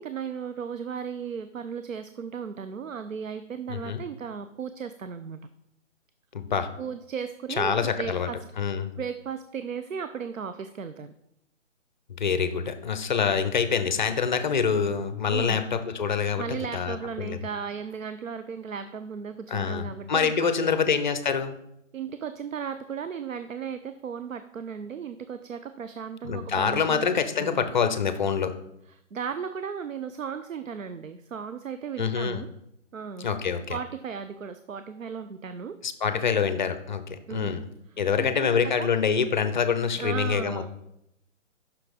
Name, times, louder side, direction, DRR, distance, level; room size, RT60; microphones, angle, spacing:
voice 1, 0.0-5.4 6.8-8.4 9.0-11.1 15.3-15.6 16.3-20.8 21.9-27.1 27.4-27.7 28.9-32.5 32.9-33.3 33.7-35.8 37.3-37.6 38.2-38.9 40.0-40.7, right 6 dB, 90° right, 10 dB, 0.6 m, -36 dB
voice 2, 3.7-4.0 6.3-6.7 7.6-8.3 8.6-8.9 12.2-16.4 16.7-17.4 19.5-21.5 26.2-28.5 32.0-32.4 33.2-33.8 35.8-37.6 38.0-40.7, left 6 dB, 35° left, 10 dB, 0.6 m, -26 dB
6.0 x 5.9 x 5.0 m, 0.81 s
figure-of-eight pair, 145°, 38 cm